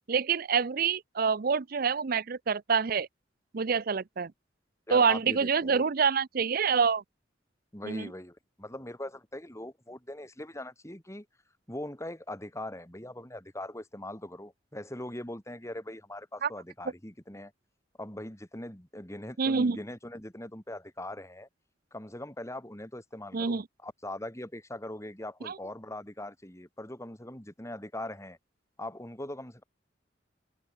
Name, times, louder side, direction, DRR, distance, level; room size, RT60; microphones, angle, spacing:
voice 1, 0.1-3.1 3.5-4.3 4.9-7.0 7.8-8.1 16.4-16.5 19.4-19.8 23.3-23.7 25.4-25.6, right 6 dB, 50° right, 0.6 m, -26 dB
voice 2, 4.9-5.9 7.7-11.3 11.7-17.5 18.0-21.5 21.9-28.4 28.8-29.6, left 1 dB, 15° left, 4.1 m, -41 dB
head